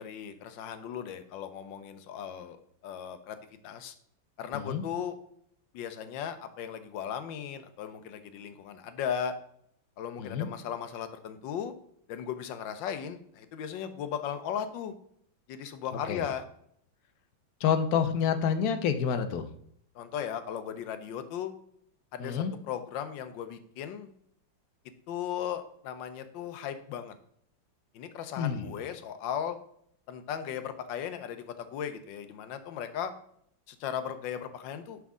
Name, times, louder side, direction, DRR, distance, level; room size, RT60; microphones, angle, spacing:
voice 1, 0.0-2.6 2.8-3.4 3.6-3.9 4.4-5.2 5.7-9.3 10.0-11.7 12.1-14.9 15.5-16.4 19.9-21.5 22.1-24.1 25.1-27.1 27.9-29.6 30.1-33.1 33.7-35.0, left 8 dB, 80° left, 10 dB, 1.4 m, -37 dB
voice 2, 4.5-4.8 10.2-10.5 16.1-16.3 17.6-19.5 22.2-22.5 28.4-28.7, left 7 dB, 65° left, 9 dB, 1.0 m, -28 dB
6.0 x 5.8 x 3.6 m, 0.68 s
omnidirectional pair, 2.1 m